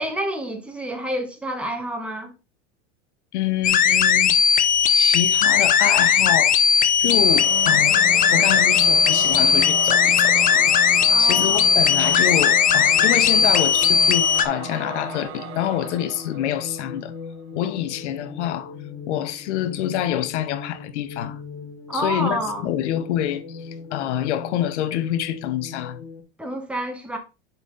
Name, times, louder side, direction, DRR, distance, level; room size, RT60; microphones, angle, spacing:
voice 1, 0.0-2.3 11.1-11.7 21.9-22.7 26.4-27.2, right 1 dB, 5° right, 1.4 m, -28 dB
voice 2, 3.3-4.4 4.9-6.6 7.0-8.0 8.3-10.7 11.2-17.1 17.6-18.7 19.1-21.4 21.9-26.1, left 11 dB, 80° left, 0.9 m, -26 dB
sound 1, 3.6-14.5, left 7 dB, 25° left, 0.6 m, -17 dB
sound 2, 7.0-26.2, left 5 dB, 40° left, 1.9 m, -38 dB
Singing / Musical instrument, 7.1-17.2, right 8 dB, 70° right, 1.2 m, -36 dB
6.9 x 4.3 x 3.8 m
supercardioid pair, 110°, 34 cm